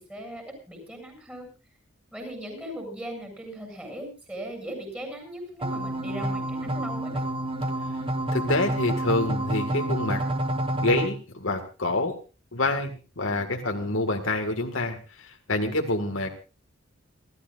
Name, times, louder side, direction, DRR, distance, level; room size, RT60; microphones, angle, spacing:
voice 1, 0.1-1.5 2.1-7.2, right 1 dB, 5° right, 4 dB, 7.3 m, -38 dB
sound 1, 5.6-11.1, right 1 dB, 25° right, 1.1 m, -28 dB
voice 2, 8.3-10.2 10.8-12.1 12.5-16.3, left 2 dB, 65° left, 4 dB, 1.9 m, -27 dB
29.5 x 13.5 x 2.5 m, 0.33 s
head